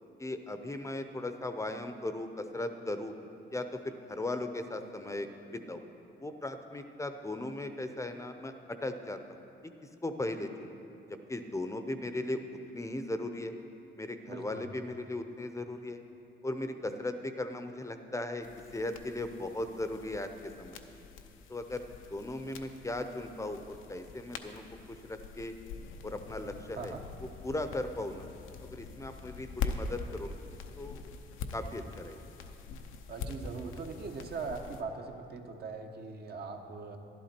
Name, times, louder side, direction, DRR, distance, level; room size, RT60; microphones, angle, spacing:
voice 1, 0.2-3.1 3.5-5.8 6.2-9.2 10.0-10.7 11.3-12.4 12.7-13.5 14.0-16.0 16.4-18.5 18.7-20.8 21.5-21.8 22.1-25.5 26.0-26.9 27.4-28.3 28.6-30.4 30.8-31.1 31.5-32.2, left 2 dB, 15° left, 8 dB, 0.7 m, -37 dB
voice 2, 14.3-14.7 26.8-27.0 33.1-37.0, right 4 dB, 55° right, 4 dB, 1.1 m, -40 dB
sound 1, 18.4-34.8, left 5 dB, 90° left, 0.7 m, -43 dB
11.5 x 11.5 x 4.4 m, 2.8 s
cardioid pair, 90°, 20 cm